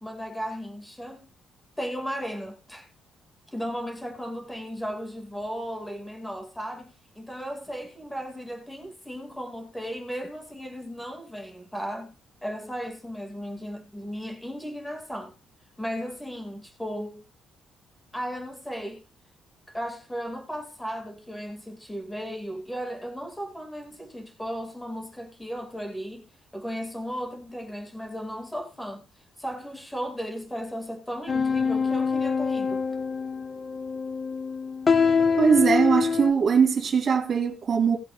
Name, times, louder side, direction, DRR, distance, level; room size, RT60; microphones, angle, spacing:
voice 1, 0.0-1.3 1.8-2.9 3.5-12.1 12.4-15.3 15.8-17.2 18.1-19.0 19.7-26.3 26.5-29.0 29.4-32.8, equal, 5° left, 2.1 m, -35 dB
sound 1, 31.3-36.3, left 5 dB, 25° left, 0.6 m, -25 dB
voice 2, 35.4-38.0, right 6 dB, 35° right, 2.8 m, -21 dB
18.5 x 7.9 x 2.4 m
cardioid pair, 175°, 0 cm